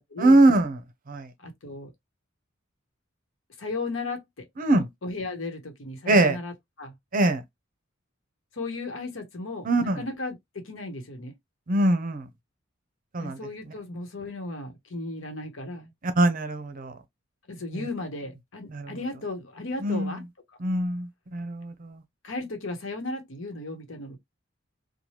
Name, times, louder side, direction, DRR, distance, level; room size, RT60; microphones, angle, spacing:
voice 1, 0.2-0.8 1.1-1.3 4.6-4.9 6.1-6.4 7.1-7.4 9.6-10.0 11.7-12.3 13.1-13.4 16.0-17.0 18.7-18.9 19.8-20.2 20.6-22.0, right 2 dB, 45° right, 0.6 m, -22 dB
voice 2, 1.4-1.9 3.6-4.5 5.0-6.5 6.8-6.9 8.5-11.3 13.2-15.9 17.5-20.2 22.2-24.2, left 2 dB, 80° left, 1.0 m, -35 dB
3.1 x 2.2 x 2.8 m
head